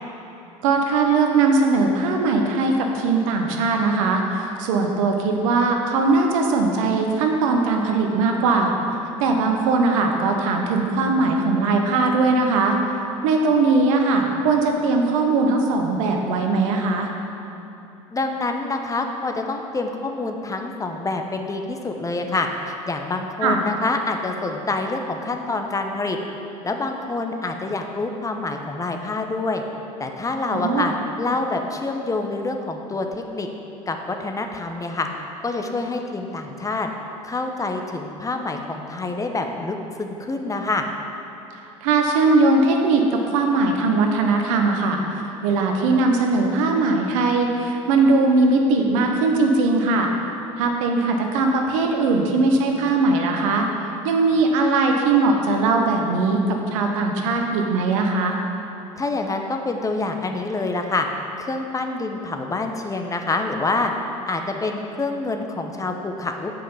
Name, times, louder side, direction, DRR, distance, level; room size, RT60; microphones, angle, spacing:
voice 1, 0.6-8.8 9.2-12.8 13.2-17.1 23.4-23.6 30.5-30.9 41.8-45.0 45.4-50.1 50.6-53.7 54.0-58.4, right 3 dB, 70° right, 3 dB, 1.0 m, -20 dB
voice 2, 18.1-26.2 26.6-29.6 30.0-33.1 33.3-33.5 33.9-35.1 35.4-36.9 37.2-40.8 59.0-61.1 61.4-63.9 64.3-66.5, left 3 dB, 20° left, 4 dB, 0.8 m, -26 dB
7.4 x 5.8 x 5.6 m, 2.9 s
hypercardioid pair, 75°, 17 cm